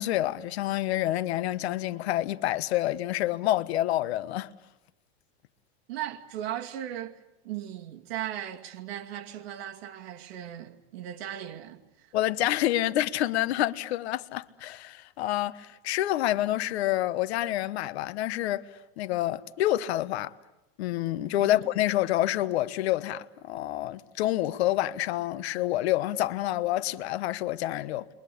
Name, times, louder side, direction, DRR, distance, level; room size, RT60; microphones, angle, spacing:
voice 1, 0.0-4.5 12.1-18.7 19.0-20.3 20.8-28.1, left 14 dB, 75° left, 1.3 m, -28 dB
voice 2, 5.9-12.1 21.4-21.6, right 11 dB, 65° right, 2.5 m, -37 dB
30.0 x 23.0 x 8.6 m
supercardioid pair, 150°, 33 cm